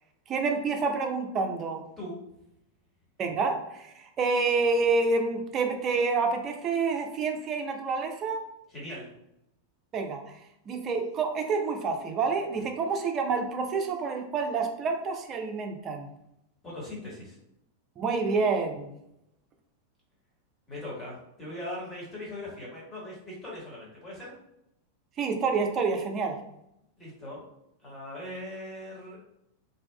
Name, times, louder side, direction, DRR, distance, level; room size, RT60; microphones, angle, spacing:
voice 1, 0.3-1.8 3.2-8.4 9.9-10.3 10.7-16.1 18.0-18.9 25.2-26.4, right 4 dB, 30° right, 4 dB, 0.4 m, -28 dB
voice 2, 8.7-9.1 16.6-17.4 20.7-24.3 27.0-27.5 27.8-29.2, left 1 dB, 15° left, -6 dB, 1.2 m, -40 dB
2.7 x 2.2 x 2.2 m, 0.81 s
figure-of-eight pair, 90°, 0 cm